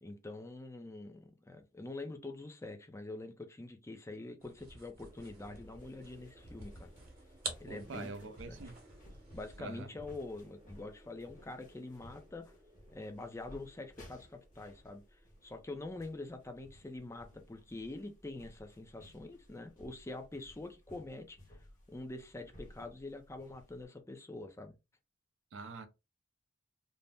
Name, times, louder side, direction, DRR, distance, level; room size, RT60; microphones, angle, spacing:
voice 1, 0.0-6.9 7.6-8.6 9.3-12.5 12.9-15.0 15.4-21.4 21.9-24.7, left 2 dB, 15° left, 0.4 m, -45 dB
sound 1, 4.4-9.8, right 4 dB, 50° right, 0.9 m, -49 dB
sound 2, 5.1-23.8, equal, 40° left, 1.0 m, -58 dB
Wind Synthesized A, 5.1-17.5, right 1 dB, 25° right, 0.7 m, -65 dB
voice 2, 7.7-8.8 9.6-9.9 25.5-25.9, right 3 dB, 70° right, 0.5 m, -45 dB
2.6 x 2.0 x 3.4 m
head